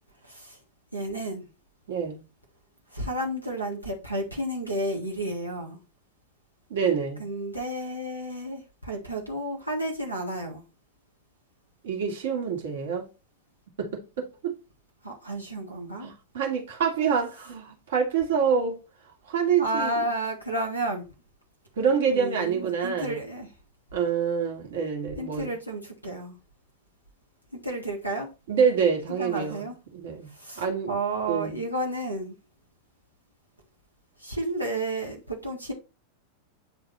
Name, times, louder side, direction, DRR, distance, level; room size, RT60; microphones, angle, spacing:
voice 1, 0.2-0.6 0.9-1.5 2.9-5.8 7.2-10.6 15.0-16.1 19.6-21.1 22.0-23.5 25.2-26.3 27.5-28.3 29.1-29.8 30.3-32.3 34.2-35.7, right 1 dB, 90° right, 1.8 m, -32 dB
voice 2, 1.9-2.2 6.7-7.2 11.8-13.1 13.8-14.5 16.0-18.8 19.3-19.9 21.8-23.2 23.9-25.5 28.5-29.6 29.9-31.0 31.3-31.6, right 6 dB, 60° right, 2.2 m, -26 dB
9.2 x 4.0 x 4.2 m
figure-of-eight pair, 90°, 0 cm